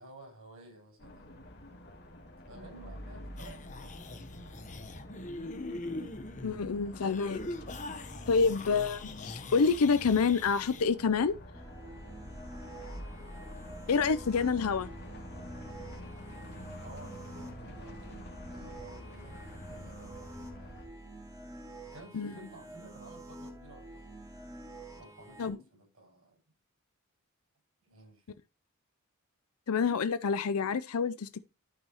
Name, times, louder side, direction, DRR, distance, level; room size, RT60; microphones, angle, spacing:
voice 1, 0.0-1.3 2.4-4.2 14.3-15.0 16.8-20.9 21.9-24.5 24.9-26.4 27.8-28.2, right 2 dB, 65° right, 5.8 m, -54 dB
sound 1, 1.0-20.8, left 1 dB, 50° left, 2.4 m, -47 dB
sound 2, 3.4-10.8, left 2 dB, 35° left, 0.9 m, -42 dB
voice 2, 6.4-7.4 8.3-11.4 13.9-14.9 22.1-22.3 25.4-25.6 29.7-31.4, left 5 dB, 80° left, 0.5 m, -27 dB
sound 3, 11.5-25.5, right 1 dB, 15° right, 2.0 m, -48 dB
12.0 x 5.5 x 2.9 m
head